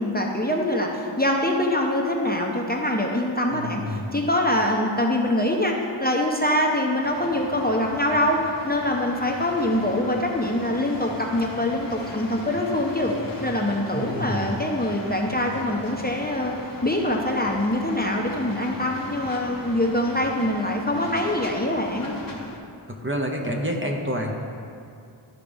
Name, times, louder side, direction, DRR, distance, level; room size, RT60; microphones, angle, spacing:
voice 1, 0.0-8.4 8.6-13.1 13.4-16.5 16.8-22.1, left 1 dB, 20° left, -1 dB, 0.8 m, -24 dB
voice 2, 3.5-4.2 13.9-14.6 23.0-24.3, equal, 25° right, 0 dB, 0.9 m, -28 dB
sound 1, 7.0-22.6, left 2 dB, 40° left, 1.1 m, -38 dB
12.5 x 4.9 x 3.5 m, 2.4 s
wide cardioid pair, 40°, 50 cm